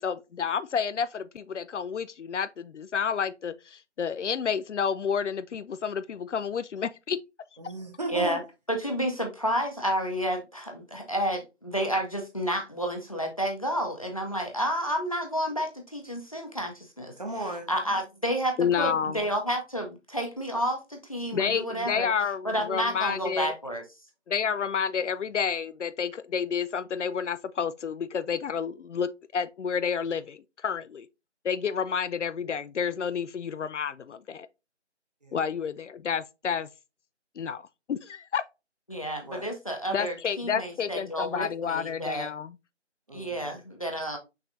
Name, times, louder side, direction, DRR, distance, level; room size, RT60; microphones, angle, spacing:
voice 1, 0.0-7.2 18.6-19.2 21.3-23.5 24.3-31.1 31.4-34.5 35.3-36.7 37.4-38.4 39.9-42.5, left 7 dB, 75° left, 0.5 m, -30 dB
voice 2, 7.6-8.4 17.2-17.7 35.2-35.3 39.2-39.4 43.1-43.6, right 1 dB, 35° right, 1.0 m, -36 dB
voice 3, 8.1-8.4 8.7-17.1 17.7-22.1 22.4-23.8 38.9-42.3 43.1-44.2, equal, 30° left, 0.6 m, -30 dB
5.9 x 3.2 x 2.6 m
figure-of-eight pair, 165°, 36 cm